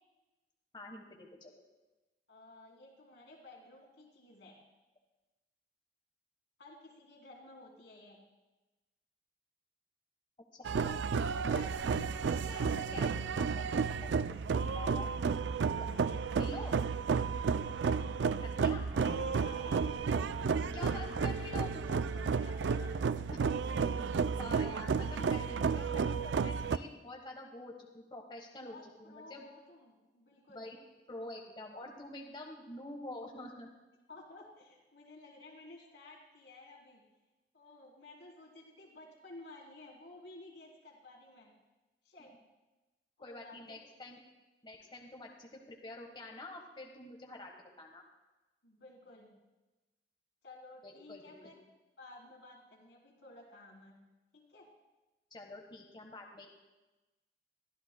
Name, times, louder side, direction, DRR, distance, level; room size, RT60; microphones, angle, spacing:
voice 1, 0.7-1.5 10.6-11.0 11.5-12.1 12.4-13.1 13.4-15.1 15.8-15.9 16.4-16.7 18.6-18.9 20.7-21.9 23.3-23.4 24.4-29.4 30.5-30.8 31.1-33.7 43.2-44.2 44.6-48.0 50.8-51.5 55.3-56.5, left 2 dB, 30° left, 1 dB, 1.3 m, -47 dB
voice 2, 2.3-4.6 6.6-8.2 18.9-19.9 20.7-21.3 21.9-23.1 28.6-30.7 34.1-37.0 37.5-41.5 42.0-42.3 43.2-43.8 48.6-49.3 50.4-51.6 52.0-54.0 54.3-54.7, left 2 dB, 90° left, -2 dB, 3.5 m, -54 dB
sound 1, 10.6-26.8, right 5 dB, 90° right, 0.4 m, -32 dB
23.0 x 13.5 x 2.2 m, 1.1 s
head